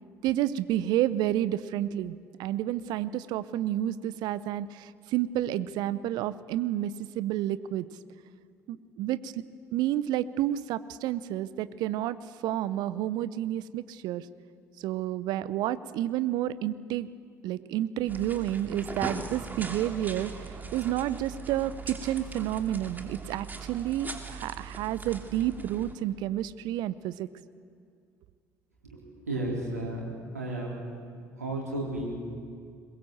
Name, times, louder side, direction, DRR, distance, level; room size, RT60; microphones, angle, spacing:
voice 1, 0.2-6.9 7.2-7.8 8.7-9.3 9.7-12.2 12.4-14.2 14.8-17.1 17.4-20.3 20.7-27.3, right 12 dB, 55° right, 16 dB, 0.7 m, -30 dB
sound 1, 18.1-25.9, right 4 dB, 20° right, 2.9 m, -40 dB
voice 2, 28.8-30.8 31.4-32.2, right 1 dB, 85° right, -3 dB, 3.9 m, -33 dB
22.0 x 21.0 x 7.8 m, 2.2 s
figure-of-eight pair, 55°, 8 cm